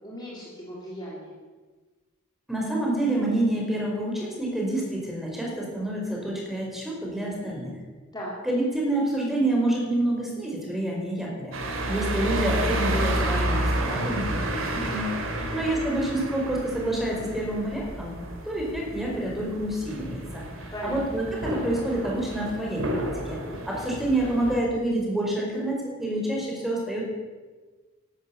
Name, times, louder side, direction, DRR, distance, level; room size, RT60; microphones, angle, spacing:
voice 1, 0.0-1.3 8.1-8.3 15.4-15.6 20.7-21.0, equal, 20° left, -4 dB, 3.3 m, -37 dB
voice 2, 2.5-7.7 8.4-11.5 11.9-15.1 15.5-18.1 18.4-23.4 23.6-27.1, right 1 dB, ahead, -3 dB, 4.8 m, -28 dB
sound 1, 11.5-24.6, right 1 dB, 70° right, 2.9 m, -30 dB
13.0 x 12.0 x 8.7 m, 1.3 s
head